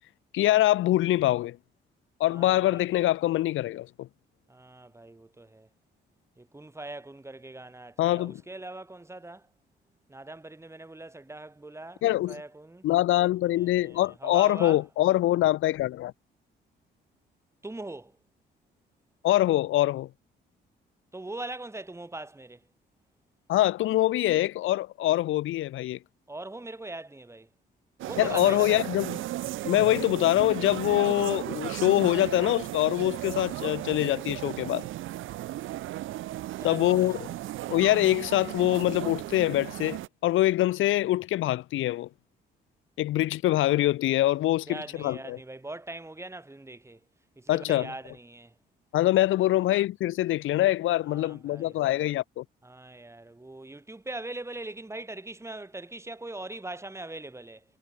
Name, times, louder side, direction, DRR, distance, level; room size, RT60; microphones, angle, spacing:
voice 1, 0.3-1.6 2.2-4.1 8.0-8.4 12.0-12.4 12.8-16.1 19.2-20.1 23.5-26.0 28.2-29.2 29.6-34.9 36.6-37.3 37.7-42.1 43.0-45.4 47.5-47.9 48.9-52.4, left 15 dB, 85° left, 2.8 m, -24 dB
voice 2, 2.3-3.0 4.5-5.7 6.4-9.5 10.1-12.8 13.6-14.8 17.6-18.1 21.1-22.6 26.3-27.5 28.0-28.8 36.6-37.2 44.7-47.0 47.4-48.5 51.1-52.0 52.6-57.6, right 2 dB, 15° right, 5.9 m, -41 dB
sound 1, 28.0-40.1, right 15 dB, 90° right, 6.1 m, -35 dB
cardioid pair, 90°, 20 cm